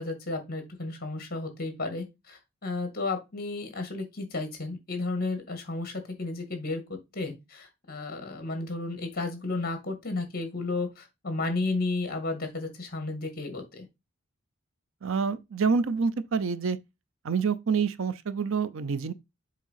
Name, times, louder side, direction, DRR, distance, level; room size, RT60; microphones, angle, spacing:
voice 1, 0.0-13.9, left 3 dB, 45° left, 1.8 m, -33 dB
voice 2, 15.0-16.8 17.2-19.1, right 5 dB, 65° right, 0.6 m, -27 dB
7.4 x 2.9 x 5.6 m
head